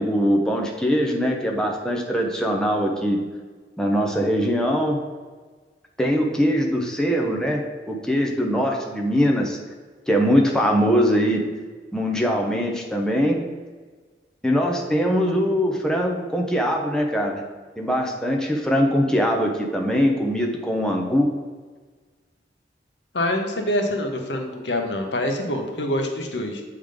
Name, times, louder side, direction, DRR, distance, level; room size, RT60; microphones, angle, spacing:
voice 1, 0.0-3.2 3.8-5.0 6.0-9.6 10.1-11.4 11.9-13.4 14.4-17.4 17.8-21.3, equal, 5° left, 0 dB, 0.8 m, -22 dB
voice 2, 23.1-26.6, left 1 dB, 80° left, 3 dB, 1.1 m, -25 dB
7.8 x 3.7 x 5.0 m, 1.4 s
head